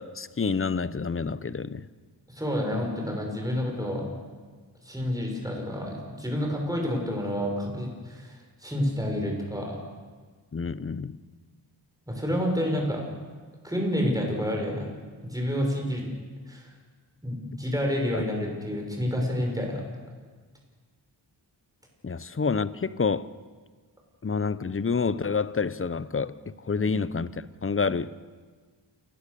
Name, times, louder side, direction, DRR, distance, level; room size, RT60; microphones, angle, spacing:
voice 1, 0.0-1.9 10.5-11.2 18.1-18.2 22.0-23.3 24.2-28.2, left 5 dB, 30° left, 0.7 m, -28 dB
voice 2, 2.3-4.0 4.8-8.3 8.6-9.8 12.1-13.0 13.6-14.9 15.3-16.0 16.5-16.7 17.2-19.8 26.8-26.9, equal, 10° right, 5.8 m, -29 dB
29.0 x 16.5 x 6.9 m
wide cardioid pair, 100°, 43 cm